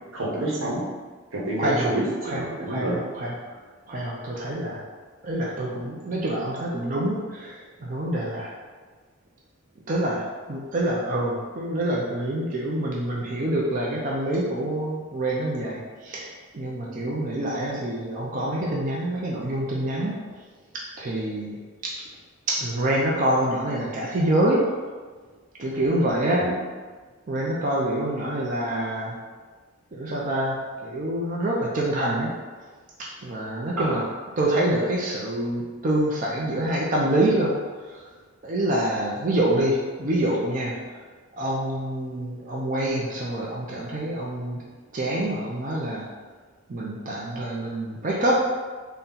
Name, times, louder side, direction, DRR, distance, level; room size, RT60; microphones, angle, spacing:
voice 1, 0.1-0.8 1.3-3.0 26.4-26.6 33.8-34.0, right 1 dB, 90° right, -5 dB, 1.1 m, -28 dB
voice 2, 1.6-1.9 2.2-3.3 3.9-4.8 5.2-8.5 9.9-20.2 21.0-21.6 21.8-21.9 22.5-24.7 25.6-26.5 27.3-29.1 29.9-32.3 33.0-34.0 34.4-37.6 38.4-40.8 41.4-44.6 44.9-46.0 46.7-48.5, right 1 dB, 40° right, -4 dB, 0.5 m, -26 dB
4.1 x 2.2 x 3.7 m, 1.4 s
head